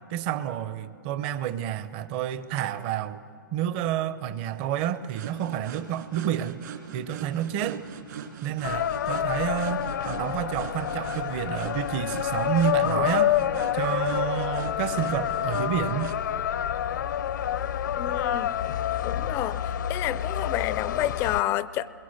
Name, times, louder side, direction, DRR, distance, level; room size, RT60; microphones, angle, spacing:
voice 1, 0.1-3.2 3.5-6.6 6.9-7.8 8.4-13.4 13.7-16.1, right 10 dB, 30° right, 13 dB, 0.7 m, -29 dB
sound 1, 5.1-16.2, right 7 dB, 65° right, 3.2 m, -41 dB
sound 2, 8.6-21.4, left 10 dB, 65° left, 0.6 m, -28 dB
voice 2, 17.9-18.5 19.0-21.9, left 13 dB, 20° left, 18 dB, 0.4 m, -29 dB
27.0 x 22.0 x 6.5 m, 2.7 s
hypercardioid pair, 155°, 11 cm